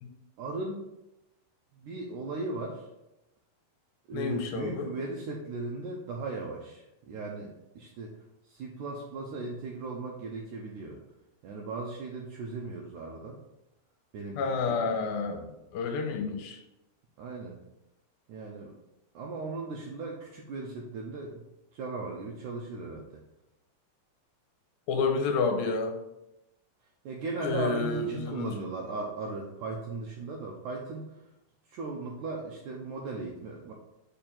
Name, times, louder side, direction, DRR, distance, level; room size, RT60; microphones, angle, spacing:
voice 1, 0.4-0.8 1.7-2.9 4.1-8.1 8.4-11.0 11.4-13.4 14.1-14.9 17.2-17.6 18.3-18.7 19.1-21.4 21.7-23.2 27.0-31.1 31.7-33.7, right 3 dB, 90° right, -1 dB, 1.7 m, -37 dB
voice 2, 4.1-4.9 14.4-16.6 24.9-25.9 27.4-28.5, left 4 dB, 80° left, 4 dB, 2.5 m, -30 dB
6.8 x 2.6 x 5.6 m, 0.91 s
omnidirectional pair, 4.2 m